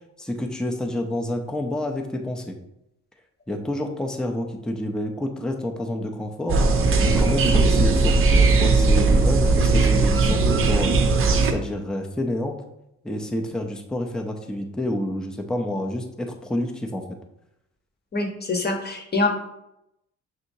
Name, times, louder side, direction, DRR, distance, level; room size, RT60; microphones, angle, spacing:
voice 1, 0.2-2.6 3.5-6.6 7.0-10.9 11.5-12.6 13.0-17.0, left 1 dB, ahead, 2 dB, 0.5 m, -28 dB
sound 1, 6.5-11.5, right 3 dB, 45° right, 0.6 m, -18 dB
voice 2, 18.1-19.3, left 3 dB, 35° left, 2 dB, 1.0 m, -24 dB
6.3 x 2.8 x 2.7 m, 0.84 s
cardioid pair, 90°, 30 cm